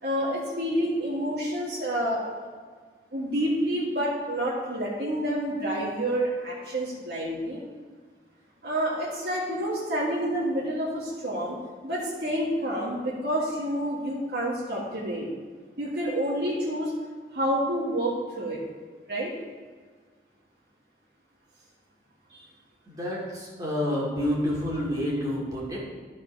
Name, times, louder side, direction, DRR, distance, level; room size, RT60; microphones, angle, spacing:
voice 1, 0.0-2.5 3.1-7.6 8.6-11.6 11.8-15.3 15.8-16.9 17.3-18.6 19.1-19.3 22.3-22.4, right 1 dB, 70° right, -7 dB, 1.7 m, -28 dB
voice 2, 22.9-25.8, left 1 dB, 20° right, -5 dB, 2.3 m, -28 dB
11.0 x 4.3 x 5.3 m, 1.6 s
head